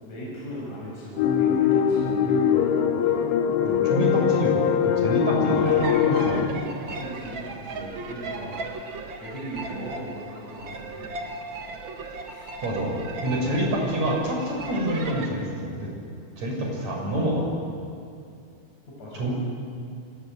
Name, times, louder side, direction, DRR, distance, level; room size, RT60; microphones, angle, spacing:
voice 1, 0.0-3.2 5.4-6.0 6.2-8.8 9.2-11.1 12.3-12.5 18.9-19.3, equal, 40° left, -5 dB, 8.2 m, -38 dB
sound 1, 1.2-6.5, left 8 dB, 85° left, 3.6 m, -22 dB
voice 2, 3.6-6.4 12.6-15.9 16.4-17.5 19.1-19.3, right 1 dB, 40° right, 0 dB, 7.2 m, -27 dB
sound 2, 5.6-15.3, right 3 dB, 90° right, 1.0 m, -36 dB
28.0 x 25.5 x 8.2 m, 2.5 s
omnidirectional pair, 5.2 m